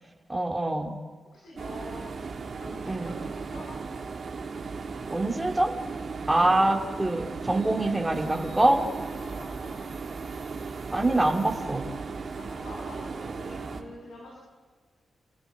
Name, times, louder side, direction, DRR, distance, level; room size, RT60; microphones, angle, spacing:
voice 1, 0.3-1.0 2.9-3.1 5.1-5.7 6.3-8.8 10.9-11.9, right 2 dB, 15° right, 2 dB, 2.5 m, -24 dB
voice 2, 1.3-2.0 2.6-3.7 9.2-9.8 12.1-14.3, left 1 dB, 85° left, -6 dB, 7.9 m, -45 dB
sound 1, 1.6-13.8, right 4 dB, 60° right, 3.0 m, -36 dB
29.0 x 13.5 x 8.4 m, 1.5 s
cardioid pair, 55°, 0 cm